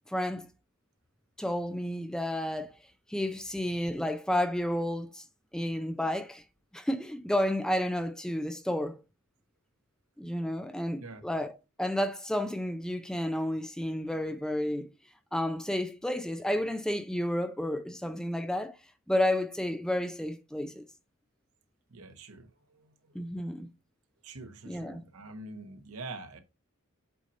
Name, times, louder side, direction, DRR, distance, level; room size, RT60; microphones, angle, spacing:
voice 1, 0.1-0.5 1.4-2.8 3.1-5.2 5.5-6.4 6.7-9.0 10.2-14.9 15.3-18.8 19.1-20.9 23.1-23.7 24.7-25.0, left 1 dB, 5° left, 0.3 m, -31 dB
voice 2, 21.9-22.9 24.2-26.4, right 3 dB, 90° right, 1.1 m, -45 dB
8.1 x 2.8 x 5.2 m
head